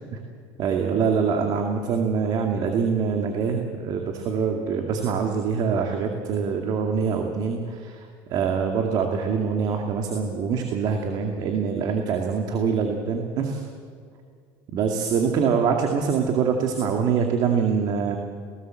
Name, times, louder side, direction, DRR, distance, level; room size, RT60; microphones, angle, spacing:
voice 1, 0.6-8.0 8.3-13.6 14.7-18.2, right 6 dB, 50° right, 3 dB, 2.4 m, -24 dB
27.5 x 19.0 x 7.8 m, 2.1 s
cardioid pair, 135°, 9 cm